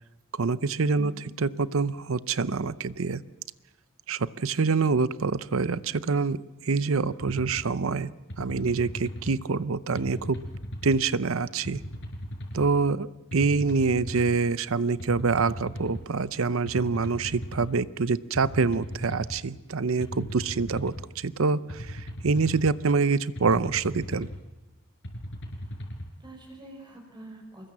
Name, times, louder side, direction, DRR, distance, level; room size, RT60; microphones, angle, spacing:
voice 1, 0.4-1.1 1.4-3.2 4.1-8.1 8.4-10.4 10.8-11.8 12.5-24.3, right 4 dB, 70° right, 16 dB, 0.7 m, -26 dB
voice 2, 0.9-1.3 25.6-25.7 26.2-27.7, right 1 dB, 20° right, 1 dB, 4.6 m, -45 dB
sound 1, 7.2-7.6 8.3-9.3 10.0-11.0 11.6-12.7 13.3-14.3 15.0-16.0 16.7-17.7 18.3-19.4 20.0-21.0 21.7-22.7 23.4-24.4 25.0-26.1, equal, 60° left, 5.0 m, -37 dB
25.0 x 21.0 x 7.5 m, 1.2 s
head